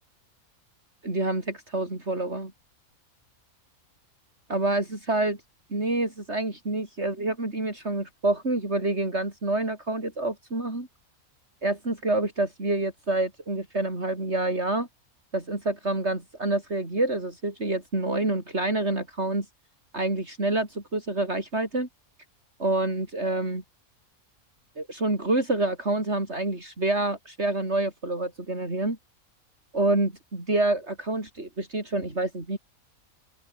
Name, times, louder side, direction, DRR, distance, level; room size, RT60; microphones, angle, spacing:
voice 1, 1.0-2.5 4.5-5.4 5.7-10.9 11.6-14.9 15.3-19.5 19.9-21.9 22.6-23.6 24.8-29.0 29.7-32.6, right 2 dB, 50° right, 5.5 m, -27 dB
open air
omnidirectional pair, 1.5 m